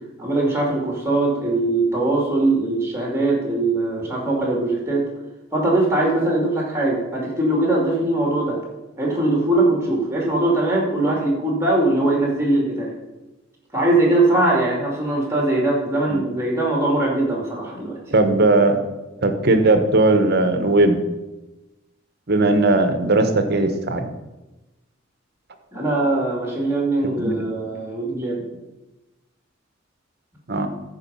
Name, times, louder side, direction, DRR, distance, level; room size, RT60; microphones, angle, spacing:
voice 1, 0.2-5.1 5.5-8.6 9.0-12.9 13.7-18.0 25.7-28.4, right 2 dB, 15° right, -2 dB, 2.6 m, -21 dB
voice 2, 18.1-18.8 19.2-21.0 22.3-24.1 27.2-27.4 30.5-30.7, right 2 dB, 55° right, 7 dB, 1.0 m, -18 dB
13.0 x 5.0 x 5.5 m, 1.0 s
head